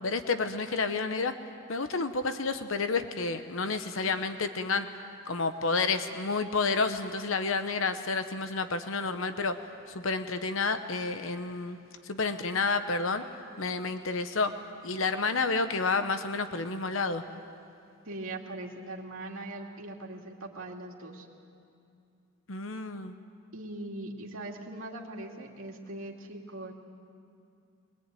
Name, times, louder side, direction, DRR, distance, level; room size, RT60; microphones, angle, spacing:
voice 1, 0.0-1.3 1.7-4.9 5.3-9.6 9.9-11.8 12.0-13.2 13.6-14.5 14.8-17.2 22.5-23.1, left 4 dB, 70° left, 9 dB, 1.0 m, -30 dB
voice 2, 18.0-21.3 23.5-26.7, right 2 dB, 75° right, 0 dB, 2.5 m, -40 dB
22.0 x 21.0 x 9.2 m, 2.5 s
head